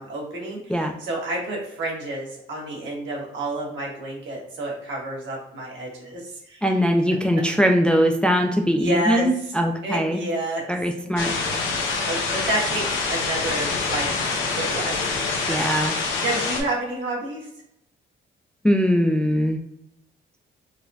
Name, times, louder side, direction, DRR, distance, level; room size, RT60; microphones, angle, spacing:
voice 1, 0.0-6.8 8.7-9.3 9.8-10.6 11.8-15.0 15.3-15.6 15.9-17.5, right 1 dB, 70° right, -3 dB, 1.4 m, -30 dB
voice 2, 6.6-10.2 10.7-11.3 15.5-15.9 18.6-19.6, equal, 5° left, 3 dB, 0.3 m, -21 dB
sound 1, 11.2-16.6, left 4 dB, 90° left, 0.7 m, -26 dB
4.0 x 2.2 x 2.6 m, 0.79 s
cardioid pair, 90°, 20 cm